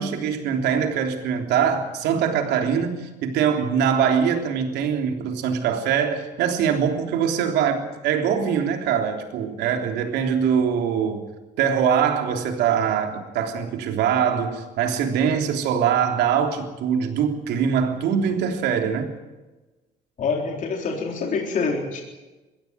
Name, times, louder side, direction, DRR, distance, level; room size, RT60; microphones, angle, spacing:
voice 1, 0.0-11.3 11.6-19.1, right 7 dB, 85° right, 4 dB, 3.4 m, -23 dB
voice 2, 20.2-22.0, left 4 dB, 50° left, 1 dB, 4.0 m, -26 dB
22.0 x 16.0 x 9.6 m, 1.1 s
cardioid pair, 110°, 17 cm